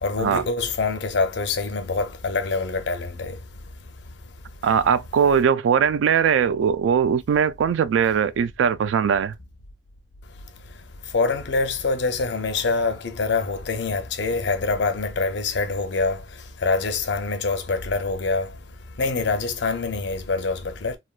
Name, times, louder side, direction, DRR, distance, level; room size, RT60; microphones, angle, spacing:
voice 1, 0.0-3.4 11.1-16.2 16.6-18.5 19.0-21.0, left 3 dB, 70° left, 0.5 m, -25 dB
voice 2, 4.6-9.3, right 7 dB, 90° right, 0.3 m, -20 dB
3.4 x 2.3 x 2.3 m
head